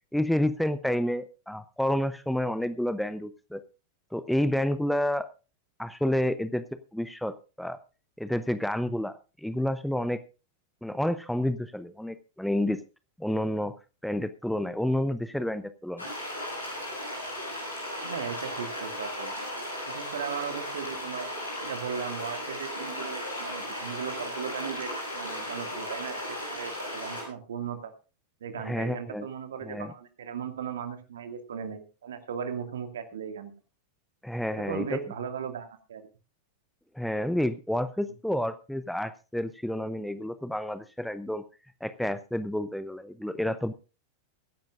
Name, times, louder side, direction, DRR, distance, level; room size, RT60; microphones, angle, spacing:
voice 1, 0.1-3.6 4.1-5.3 5.8-6.6 6.9-7.8 8.2-10.2 10.8-12.8 13.2-13.7 14.0-16.1 28.6-29.3 29.6-29.9 34.2-35.0 36.9-41.4 41.8-43.7, left 1 dB, ahead, 12 dB, 0.8 m, -29 dB
sound 1, 16.0-27.2, left 1 dB, 80° left, 6.7 m, -36 dB
voice 2, 18.0-19.3 19.9-21.3 21.6-27.9 28.4-33.5 34.5-36.1, right 7 dB, 65° right, 8 dB, 2.1 m, -37 dB
23.0 x 10.5 x 2.5 m, 0.33 s
figure-of-eight pair, 90°, 0 cm